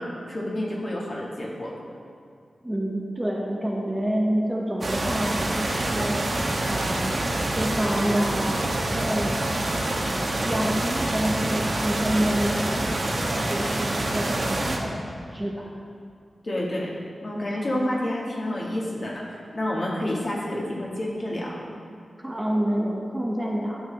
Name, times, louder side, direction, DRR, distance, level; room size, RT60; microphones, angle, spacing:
voice 1, 0.0-1.7 16.4-16.9 17.2-21.6, left 1 dB, 45° left, -4 dB, 1.9 m, -29 dB
voice 2, 2.6-6.2 6.7-7.2 7.5-9.5 10.1-14.9 15.2-15.6 22.2-23.8, equal, 10° right, -2 dB, 0.9 m, -28 dB
sound 1, 4.8-14.8, right 1 dB, 45° right, 1.1 m, -26 dB
12.5 x 7.2 x 3.4 m, 2.3 s
wide cardioid pair, 125°, 0 cm